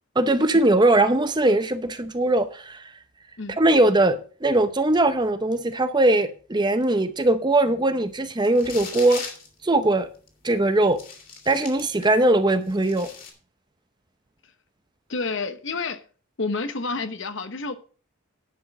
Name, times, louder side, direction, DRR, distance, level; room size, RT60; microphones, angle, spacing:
voice 1, 0.2-2.9 3.6-9.2 9.6-10.1 10.4-11.0 11.5-13.1, right 2 dB, 20° right, 0.7 m, -20 dB
Unfolding and crumbling paper, 8.4-9.5 10.3-10.4 10.9-12.2 12.5-13.3, left 5 dB, 40° left, 2.4 m, -38 dB
voice 2, 15.1-16.0 16.4-17.8, left 3 dB, 60° left, 1.0 m, -29 dB
10.0 x 6.2 x 5.9 m
head